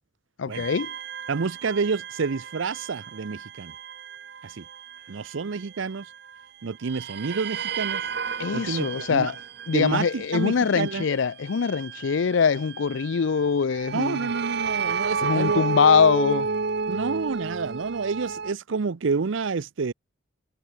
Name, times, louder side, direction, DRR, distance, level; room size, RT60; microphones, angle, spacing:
voice 1, 0.4-0.9 8.4-9.4 9.7-14.3 15.2-16.5, left 6 dB, 70° left, 0.5 m, -23 dB
sound 1, 0.5-6.4 6.8-18.5, right 5 dB, 55° right, 1.0 m, -32 dB
voice 2, 1.3-3.7 4.4-4.6 5.1-6.1 6.6-8.1 8.5-9.3 9.7-11.1 13.9-15.6 16.9-19.9, right 4 dB, 80° right, 0.6 m, -29 dB
head